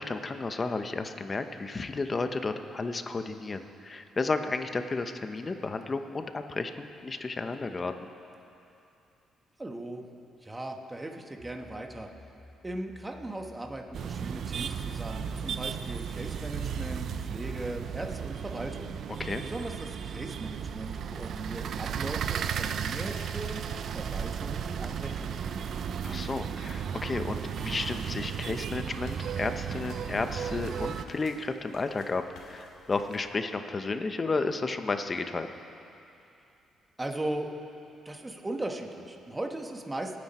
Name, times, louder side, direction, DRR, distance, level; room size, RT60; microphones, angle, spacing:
voice 1, 0.0-8.1 19.2-19.4 26.0-35.5, left 3 dB, 30° left, 8 dB, 1.0 m, -32 dB
voice 2, 9.6-10.0 10.4-12.1 12.6-19.0 19.4-25.8 37.0-37.5 38.0-40.2, right 1 dB, 15° right, 3 dB, 1.5 m, -38 dB
sound 1, 11.4-25.4, left 1 dB, 5° left, 0.8 m, -53 dB
sound 2, 13.9-31.1, right 8 dB, 65° right, 0.5 m, -34 dB
sound 3, 27.8-33.2, left 3 dB, 75° left, 2.4 m, -54 dB
27.0 x 9.6 x 4.4 m, 2.7 s
cardioid pair, 90°, 0 cm